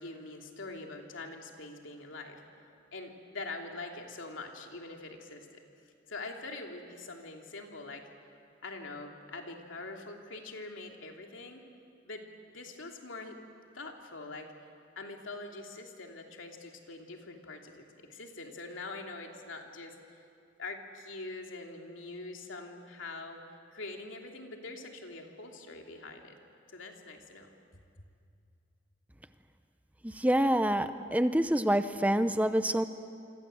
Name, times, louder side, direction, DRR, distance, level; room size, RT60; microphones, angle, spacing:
voice 1, 0.0-2.4 2.9-5.6 6.1-8.1 8.6-11.6 12.0-13.4 13.7-14.5 15.0-20.0 20.6-23.4 23.7-26.4 26.7-27.5, left 3 dB, 80° left, 2 dB, 3.0 m, -44 dB
voice 2, 30.0-32.8, right 1 dB, 10° right, 10 dB, 0.7 m, -27 dB
28.0 x 25.5 x 7.8 m, 2.4 s
head